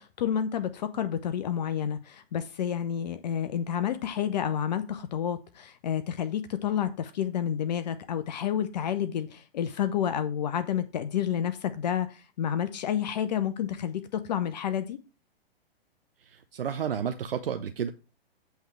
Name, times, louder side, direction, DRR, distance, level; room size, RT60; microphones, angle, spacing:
voice 1, 0.0-15.0, left 9 dB, 45° left, 11 dB, 0.6 m, -30 dB
voice 2, 16.2-17.9, right 8 dB, 65° right, 8 dB, 0.6 m, -31 dB
8.1 x 3.3 x 6.0 m, 0.33 s
figure-of-eight pair, 115°, 30 cm